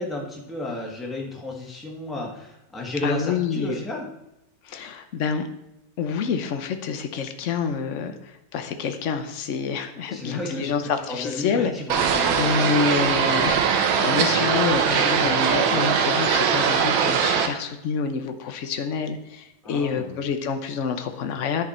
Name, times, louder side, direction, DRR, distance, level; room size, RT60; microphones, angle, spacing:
voice 1, 0.0-4.1 10.1-10.7 11.1-12.6 19.6-20.2, left 2 dB, ahead, -2 dB, 1.2 m, -32 dB
voice 2, 3.0-3.8 4.6-5.5 6.0-11.7 12.4-21.6, left 6 dB, 65° left, 7 dB, 0.7 m, -27 dB
sound 1, 11.9-17.5, right 6 dB, 90° right, 1.7 m, -21 dB
11.0 x 5.2 x 4.3 m, 0.88 s
omnidirectional pair, 2.2 m